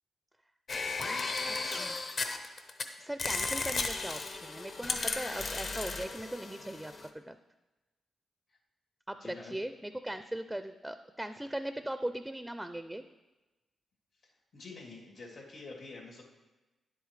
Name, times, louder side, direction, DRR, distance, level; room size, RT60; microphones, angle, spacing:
sound 1, 0.7-2.8 3.2-7.1, left 3 dB, 55° left, 0.8 m, -35 dB
voice 1, 1.5-2.0 3.0-7.4 9.1-13.0, right 1 dB, 5° right, 9 dB, 0.4 m, -39 dB
voice 2, 9.2-9.6 14.2-16.2, left 3 dB, 80° left, -3 dB, 2.5 m, -47 dB
10.0 x 8.1 x 3.2 m, 1.1 s
cardioid pair, 75°, 0 cm